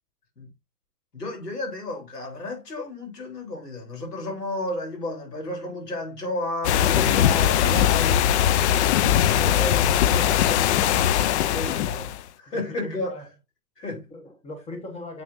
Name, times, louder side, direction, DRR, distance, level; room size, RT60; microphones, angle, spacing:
voice 1, 1.1-8.2 9.3-9.9 11.5-12.1 12.4-13.1 13.8-14.1, left 2 dB, 90° left, 3.7 m, -32 dB
sound 1, 6.6-12.2, left 10 dB, 45° left, 0.5 m, -20 dB
voice 2, 12.5-13.3 14.1-15.2, left 1 dB, 15° left, 1.4 m, -40 dB
7.3 x 5.9 x 2.6 m
hypercardioid pair, 125°, 46 cm